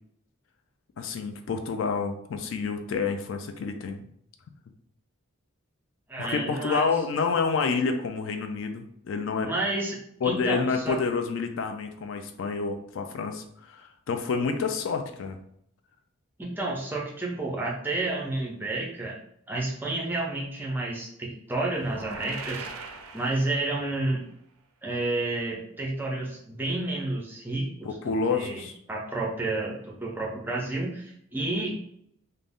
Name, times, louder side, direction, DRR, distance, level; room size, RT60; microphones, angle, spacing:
voice 1, 1.0-4.1 6.2-9.5 10.2-15.4 27.8-28.8, left 5 dB, 60° left, 6 dB, 0.3 m, -29 dB
voice 2, 6.1-6.9 9.4-10.0 10.2-11.0 16.4-19.2 19.5-22.7 23.1-24.2 24.8-28.6 28.9-31.7, right 2 dB, 10° right, -2 dB, 0.4 m, -30 dB
sound 1, 21.8-24.0, right 4 dB, 75° right, 0.3 m, -40 dB
2.5 x 2.0 x 3.4 m, 0.71 s
head